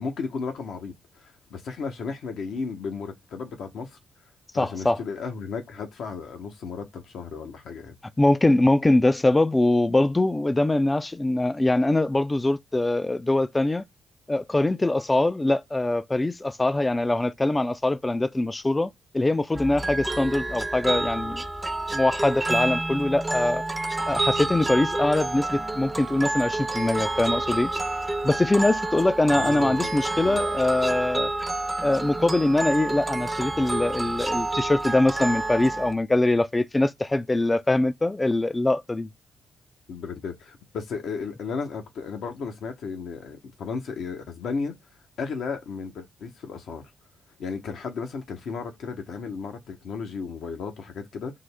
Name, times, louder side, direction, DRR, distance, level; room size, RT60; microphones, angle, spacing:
voice 1, 0.0-4.0 4.5-7.9 29.3-30.4 39.9-44.7 45.2-46.8 47.4-51.4, left 5 dB, 70° left, 0.9 m, -34 dB
voice 2, 4.5-5.0 8.2-13.8 14.3-21.4 21.9-23.6 24.1-27.7 28.2-31.3 31.8-39.1, left 2 dB, 20° left, 0.4 m, -23 dB
sound 1, 19.5-35.9, right 2 dB, 25° right, 0.6 m, -29 dB
3.7 x 2.1 x 3.3 m
supercardioid pair, 50°, 0 cm